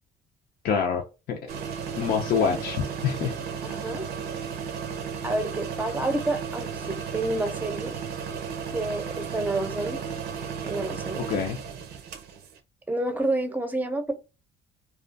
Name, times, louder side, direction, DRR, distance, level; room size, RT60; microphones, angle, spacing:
voice 1, 0.6-1.0 1.3-1.4 1.9-3.3 11.3-11.6, left 6 dB, 70° left, 0.6 m, -25 dB
sound 1, 1.5-12.6, right 6 dB, 75° right, 0.6 m, -34 dB
voice 2, 3.6-4.1 5.2-8.0 8.7-10.0 10.6-11.2 12.9-14.1, right 2 dB, 10° right, 0.6 m, -29 dB
2.4 x 2.3 x 2.5 m
cardioid pair, 110°, 17 cm